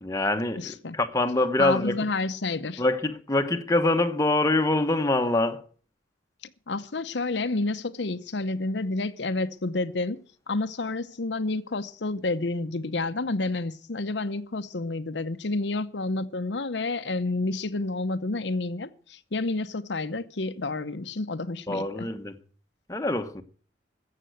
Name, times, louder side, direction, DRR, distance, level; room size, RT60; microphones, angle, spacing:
voice 1, 0.0-2.0 2.8-5.6 21.7-22.4 22.9-23.4, left 2 dB, 20° left, 1.0 m, -25 dB
voice 2, 0.6-1.0 1.6-2.8 6.7-10.2 10.5-22.1, left 2 dB, 75° left, 0.9 m, -29 dB
14.5 x 7.6 x 7.9 m
head